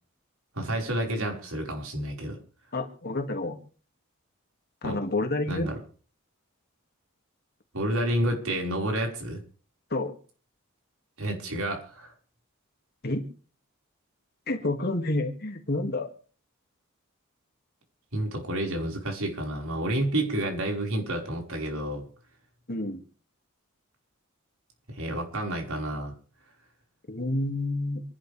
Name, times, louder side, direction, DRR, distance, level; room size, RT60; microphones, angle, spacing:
voice 1, 0.5-2.4 4.8-5.0 5.5-5.8 7.7-9.4 11.2-12.1 18.1-22.1 24.9-26.1, right 1 dB, 85° right, 2 dB, 5.3 m, -30 dB
voice 2, 2.7-3.6 4.8-5.7 9.9-10.1 13.0-13.2 14.5-16.1 22.7-23.0 27.1-28.0, left 2 dB, 50° left, 4 dB, 2.5 m, -29 dB
28.0 x 11.5 x 3.5 m, 0.41 s
head